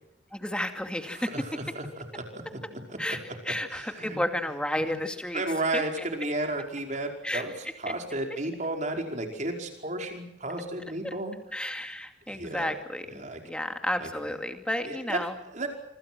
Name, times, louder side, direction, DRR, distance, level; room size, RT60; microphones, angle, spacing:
voice 1, 0.3-1.3 3.0-3.2 3.5-5.4 5.7-6.1 7.2-7.4 11.0-11.1 11.5-15.4, left 1 dB, 5° left, 6 dB, 2.4 m, -32 dB
voice 2, 1.1-3.0 3.7-4.2 4.5-4.6 5.3-11.4 11.8-11.9 12.3-12.7 13.1-13.4 14.0-14.1 14.8-15.2 15.5-15.7, right 2 dB, 40° right, 3 dB, 5.2 m, -33 dB
26.5 x 25.0 x 6.2 m, 0.80 s
head